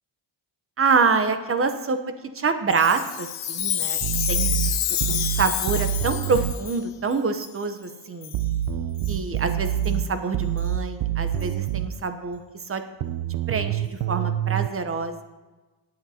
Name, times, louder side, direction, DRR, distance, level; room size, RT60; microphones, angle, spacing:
voice 1, 0.8-2.0 2.3-4.0 4.3-4.5 5.1-8.3 9.1-12.4 12.7-12.8 13.5-15.2, right 4 dB, 30° right, 8 dB, 0.8 m, -26 dB
Chime, 2.7-6.8 7.4-7.5 8.2-8.4 9.0-9.2 9.8-9.9 10.6-10.7 11.4-11.5, left 10 dB, 65° left, 1.0 m, -28 dB
sound 1, 4.0-6.6 8.3-12.0 13.0-14.7, right 11 dB, 80° right, 0.6 m, -26 dB
18.0 x 8.8 x 2.8 m, 1.2 s
cardioid pair, 150°, 47 cm